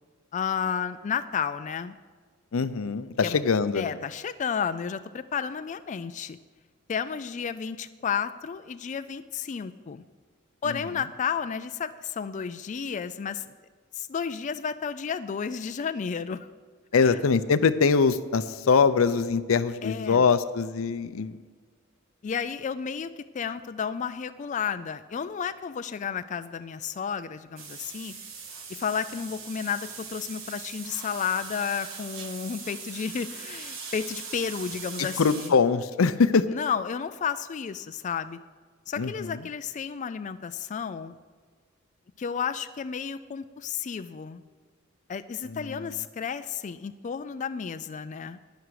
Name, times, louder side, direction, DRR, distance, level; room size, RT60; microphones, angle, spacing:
voice 1, 0.3-1.9 3.2-3.4 3.7-6.4 6.9-10.0 10.6-13.5 13.9-16.5 16.9-17.2 19.8-20.2 22.2-28.1 28.7-35.5 36.5-38.4 38.9-41.1 42.2-44.4 45.1-48.4, left 7 dB, 35° left, 11 dB, 0.3 m, -32 dB
voice 2, 2.5-4.0 16.9-21.4 35.0-36.5 39.0-39.4 45.5-45.8, left 5 dB, 85° left, 13 dB, 0.5 m, -23 dB
sound 1, 27.6-35.5, right 5 dB, 70° right, 1.6 m, -41 dB
11.0 x 10.5 x 4.8 m, 1.5 s
head